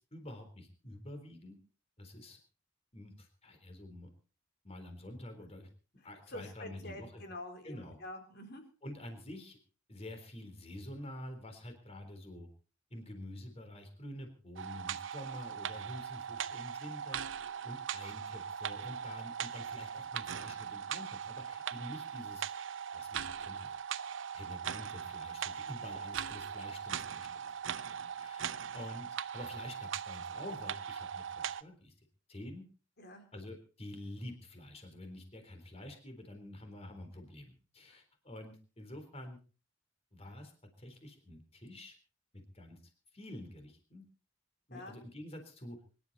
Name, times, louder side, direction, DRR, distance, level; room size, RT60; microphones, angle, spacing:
voice 1, 0.1-1.6 2.0-2.4 2.9-4.1 4.6-5.7 6.0-7.2 7.6-8.0 8.8-9.6 9.9-12.5 12.9-17.2 17.6-22.5 22.9-23.7 24.3-27.5 28.2-31.9 32.3-32.6 33.3-39.4 40.1-40.5 40.8-42.0 42.3-42.8 43.1-44.0 44.7-45.8, left 1 dB, 35° left, 5 dB, 3.8 m, -48 dB
voice 2, 6.3-8.6 33.0-33.2 37.9-38.0 44.7-45.0, left 1 dB, 55° left, 5 dB, 3.9 m, -47 dB
sound 1, 14.6-31.6, right 8 dB, 85° right, 0.8 m, -40 dB
25.0 x 12.0 x 4.2 m, 0.37 s
head